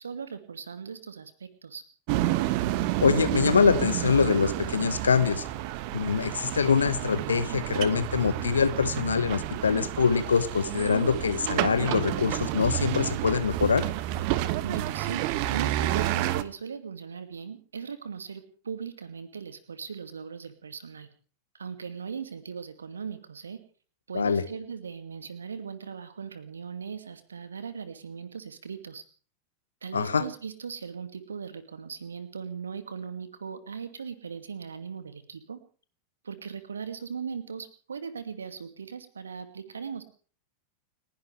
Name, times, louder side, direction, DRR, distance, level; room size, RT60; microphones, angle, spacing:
voice 1, 0.0-1.8 14.6-21.1 21.5-23.6 24.1-29.0 29.8-35.6 36.2-40.0, right 6 dB, 70° right, 10 dB, 2.4 m, -39 dB
sound 1, 2.1-16.4, right 14 dB, 45° right, 1.2 m, -30 dB
voice 2, 3.0-5.4 5.9-13.8 24.1-24.4 29.9-30.2, left 6 dB, 70° left, 13 dB, 1.4 m, -24 dB
30.0 x 11.0 x 3.4 m, 0.43 s
figure-of-eight pair, 90°, 0 cm